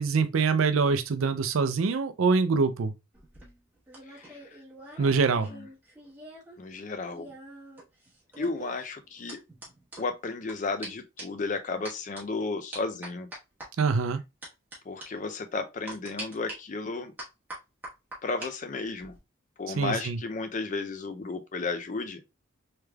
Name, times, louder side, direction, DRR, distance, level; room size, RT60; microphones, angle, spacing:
voice 1, 0.0-2.9 5.0-5.5 13.8-14.2 19.8-20.2, right 4 dB, 90° right, 0.5 m, -24 dB
sound 1, 3.1-6.6 6.8-10.5 10.8-10.9 11.2-11.4 11.8-12.2 12.7-13.7 14.4-14.8 15.0-15.1 15.9-16.5 17.2-18.5 18.8-19.2, right 1 dB, 10° right, 1.1 m, -43 dB
voice 2, 4.1-4.4 5.0-5.6 6.6-7.3 8.4-9.4 10.0-13.3 14.9-17.1 18.2-19.1 19.6-22.2, left 3 dB, 40° left, 0.4 m, -33 dB
3.3 x 3.2 x 2.2 m
head